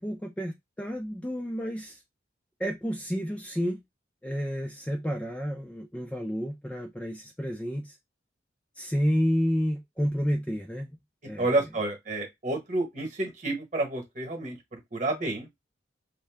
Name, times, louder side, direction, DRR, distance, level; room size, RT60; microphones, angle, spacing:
voice 1, 0.0-2.0 2.6-3.8 4.2-8.0 8.8-10.9 11.2-11.5, equal, 5° left, 0.4 m, -30 dB
voice 2, 11.4-15.5, right 2 dB, 40° right, 1.0 m, -30 dB
2.6 x 2.1 x 3.4 m
head